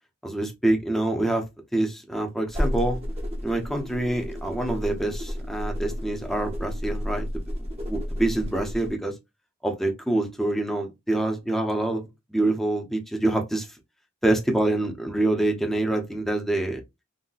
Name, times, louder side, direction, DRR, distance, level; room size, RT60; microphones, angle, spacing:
voice 1, 0.2-1.5 1.7-3.0 3.4-7.4 7.9-9.2 9.6-13.7 14.2-16.8, right 1 dB, ahead, 0.6 m, -26 dB
sound 1, 2.5-8.9, equal, 30° right, 0.7 m, -31 dB
3.9 x 2.1 x 2.3 m
head